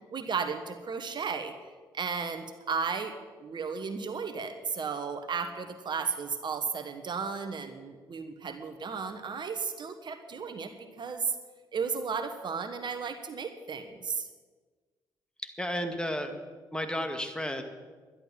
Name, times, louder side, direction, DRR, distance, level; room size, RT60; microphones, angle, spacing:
voice 1, 0.1-1.5 1.9-3.1 3.4-10.7 11.0-11.3 11.7-14.3, right 5 dB, 50° right, 7 dB, 1.3 m, -34 dB
voice 2, 15.6-16.3 16.7-17.6, equal, 10° left, 6 dB, 2.1 m, -32 dB
12.0 x 11.5 x 7.5 m, 1.4 s
hypercardioid pair, 50°, 10 cm